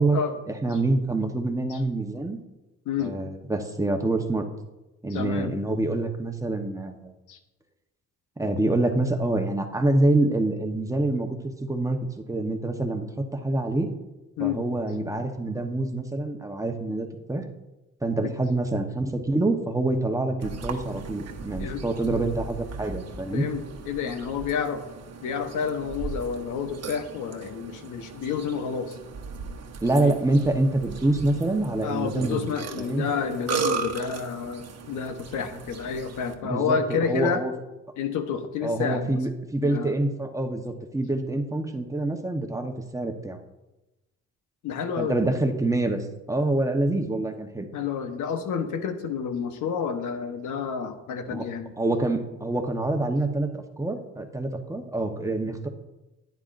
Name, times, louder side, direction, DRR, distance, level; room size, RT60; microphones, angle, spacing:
voice 1, 0.5-2.4 3.0-4.4 5.0-7.1 8.4-12.0 12.3-13.9 14.4-17.4 18.0-23.5 29.8-32.4 32.8-33.0 36.4-37.5 38.6-43.4 45.0-47.7 51.3-51.5 51.8-55.7, right 2 dB, 10° right, 4 dB, 1.0 m, -26 dB
voice 2, 2.8-3.2 5.1-5.6 7.3-7.4 14.4-14.6 18.2-18.3 21.6-21.8 23.3-24.8 25.2-29.0 29.9-30.2 31.8-37.4 38.0-39.2 39.6-39.9 44.6-45.2 47.7-51.7, left 6 dB, 80° left, 8 dB, 1.1 m, -29 dB
Burping eructation, 20.4-36.3, right 5 dB, 55° right, 1.1 m, -37 dB
11.0 x 9.6 x 2.6 m, 1.0 s
cardioid pair, 90°, 30 cm